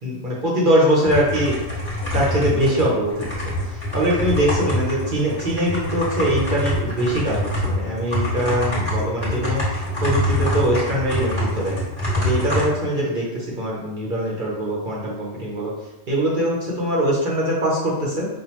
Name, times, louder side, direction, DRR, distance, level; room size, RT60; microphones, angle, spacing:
voice 1, 0.0-1.6 2.1-3.3 3.9-9.6 10.0-11.8 12.2-15.7 16.1-18.3, equal, 45° right, -5 dB, 0.9 m, -22 dB
sound 1, 1.1-12.6, left 1 dB, 20° left, 1.4 m, -25 dB
5.4 x 2.4 x 3.0 m, 1.0 s
omnidirectional pair, 1.4 m